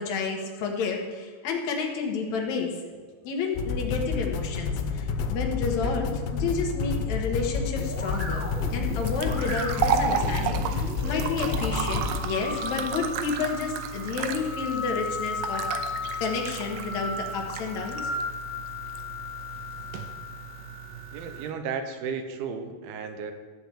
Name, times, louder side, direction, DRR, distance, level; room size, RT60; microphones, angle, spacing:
voice 1, 0.0-2.7 3.2-15.6 16.2-18.0, left 5 dB, 55° left, 1 dB, 2.1 m, -30 dB
sound 1, 3.6-13.2, left 5 dB, 85° left, 3.1 m, -30 dB
sound 2, 7.8-21.4, left 2 dB, 5° right, 2.2 m, -36 dB
sound 3, 8.1-21.5, right 8 dB, 90° right, 3.0 m, -34 dB
voice 2, 21.1-23.3, right 6 dB, 75° right, 7 dB, 2.6 m, -34 dB
14.0 x 5.1 x 8.6 m, 1.5 s
omnidirectional pair, 5.0 m